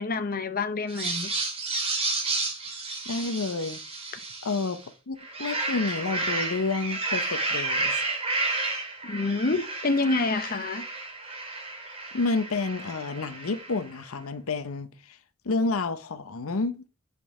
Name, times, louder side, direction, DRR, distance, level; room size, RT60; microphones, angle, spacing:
voice 1, 0.0-1.3 9.0-10.9, left 3 dB, 45° left, 0.8 m, -27 dB
sound 1, 0.9-4.8 5.2-13.9, right 3 dB, 30° right, 2.3 m, -31 dB
voice 2, 3.1-3.8 4.4-8.0 12.1-15.2 15.4-16.8, left 3 dB, 85° left, 0.7 m, -29 dB
8.6 x 5.4 x 3.1 m
head